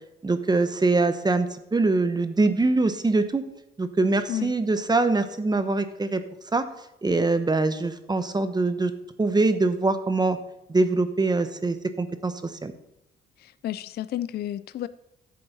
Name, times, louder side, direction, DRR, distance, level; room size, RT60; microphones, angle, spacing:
voice 1, 0.2-3.4 3.8-6.7 7.0-8.9 9.2-10.4 10.7-12.7, right 3 dB, 20° right, 0.9 m, -23 dB
voice 2, 13.4-14.9, left 12 dB, 55° left, 0.4 m, -31 dB
11.0 x 7.8 x 4.1 m
cardioid pair, 90°, 20 cm